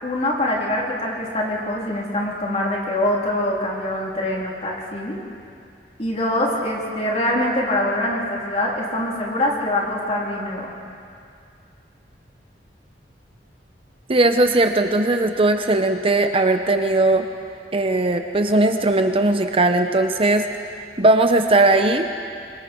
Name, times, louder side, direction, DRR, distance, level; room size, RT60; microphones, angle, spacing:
voice 1, 0.0-5.2 6.0-10.7, left 1 dB, 35° left, -3 dB, 3.5 m, -24 dB
voice 2, 14.1-17.2 17.7-20.4 21.0-22.1, right 2 dB, 30° right, 6 dB, 0.8 m, -18 dB
24.5 x 24.0 x 4.6 m, 2.4 s
head